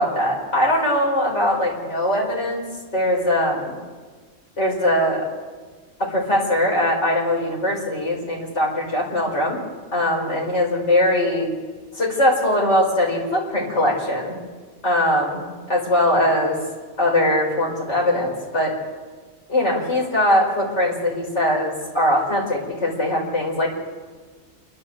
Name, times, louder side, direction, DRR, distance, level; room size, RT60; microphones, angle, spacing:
voice 1, 0.0-2.6 2.9-3.7 4.6-5.3 6.0-9.6 9.9-11.5 11.9-14.4 14.8-16.6 17.0-18.7 19.5-23.7, left 1 dB, 60° left, -2 dB, 4.9 m, -21 dB
28.5 x 12.0 x 7.7 m, 1.4 s
omnidirectional pair, 1.4 m